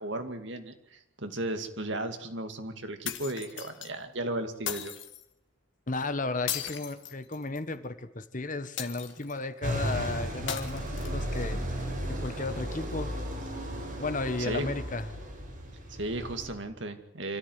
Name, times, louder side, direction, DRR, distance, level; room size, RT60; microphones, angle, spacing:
voice 1, 0.0-4.9 14.4-14.7 15.9-17.4, right 1 dB, 65° right, 7 dB, 2.4 m, -35 dB
sound 1, 3.0-3.9 4.7-5.2 6.5-7.7 8.8-9.4 10.5-11.4, left 9 dB, 65° left, 1.9 m, -37 dB
voice 2, 5.9-13.2 14.0-15.1, left 3 dB, 40° left, 11 dB, 1.4 m, -34 dB
sound 2, 9.6-16.5, equal, 40° right, 7.3 m, -35 dB
25.5 x 14.0 x 9.6 m, 0.82 s
head